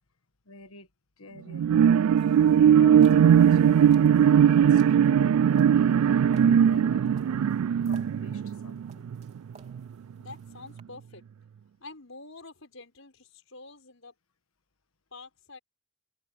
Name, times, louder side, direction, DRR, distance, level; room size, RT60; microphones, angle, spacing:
voice 1, 0.4-0.9 1.2-1.8 2.4-7.5 7.9-9.1, left 3 dB, 85° left, 1.5 m, -49 dB
sound 1, 1.5-9.3 9.7-9.8, right 8 dB, 90° right, 0.3 m, -20 dB
sound 2, 2.1-10.8, right 3 dB, 30° right, 3.8 m, -56 dB
voice 2, 10.2-11.2 11.8-14.1 15.1-15.6, left 3 dB, 70° left, 5.4 m, -47 dB
head